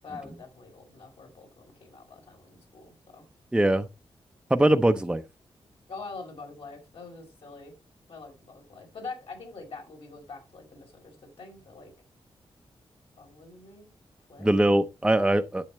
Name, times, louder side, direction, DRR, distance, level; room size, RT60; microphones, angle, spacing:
voice 1, 0.0-3.3 5.9-7.7 8.1-11.9 13.2-13.9 14.3-14.5, left 4 dB, 65° left, 5.5 m, -44 dB
voice 2, 3.5-3.9 4.5-5.2 14.4-15.7, right 1 dB, 10° right, 0.7 m, -22 dB
10.5 x 7.6 x 3.1 m
wide cardioid pair, 115°, 10 cm